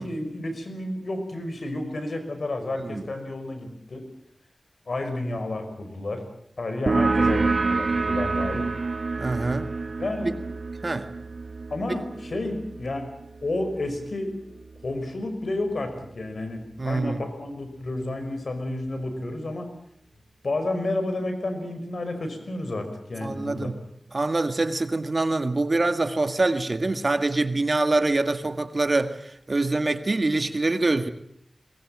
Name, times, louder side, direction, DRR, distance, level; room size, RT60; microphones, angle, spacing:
voice 1, 0.0-4.1 4.9-6.2 6.6-8.7 10.0-10.4 11.7-13.1 13.4-14.3 14.8-19.7 20.4-23.7, left 2 dB, 70° left, 5.5 m, -31 dB
sound 1, 6.9-14.1, right 3 dB, 70° right, 1.3 m, -27 dB
voice 2, 9.2-9.7 10.8-11.1 16.8-17.2 23.2-23.7 24.1-31.1, right 2 dB, 50° right, 1.9 m, -25 dB
22.0 x 21.0 x 8.8 m
wide cardioid pair, 55°, 0 cm